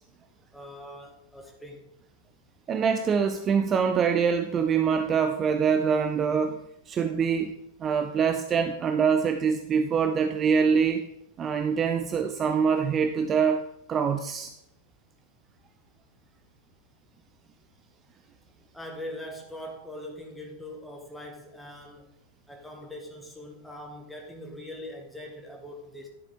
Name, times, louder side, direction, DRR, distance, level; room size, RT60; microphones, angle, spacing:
voice 1, 0.5-1.8 18.7-22.1 22.5-26.1, left 1 dB, 5° left, 0 dB, 1.5 m, -42 dB
voice 2, 2.7-11.0 11.4-14.5, right 6 dB, 25° right, 7 dB, 0.6 m, -25 dB
11.0 x 7.0 x 3.6 m, 0.79 s
figure-of-eight pair, 90°, 0 cm